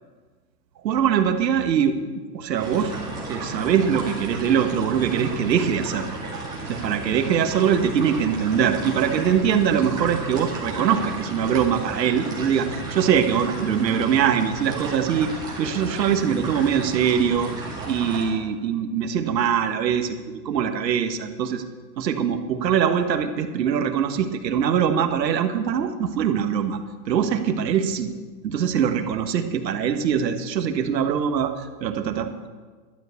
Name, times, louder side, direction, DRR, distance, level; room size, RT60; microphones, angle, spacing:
voice 1, 0.8-2.9 3.3-6.2 6.7-15.3 15.6-17.5 17.9-21.6 22.0-26.8 27.1-28.1 28.4-32.5, right 8 dB, 85° right, 8 dB, 1.5 m, -23 dB
sound 1, 2.6-18.2, right 2 dB, 10° right, 2.3 m, -33 dB
12.0 x 7.0 x 8.3 m, 1.4 s
supercardioid pair, 170°, 49 cm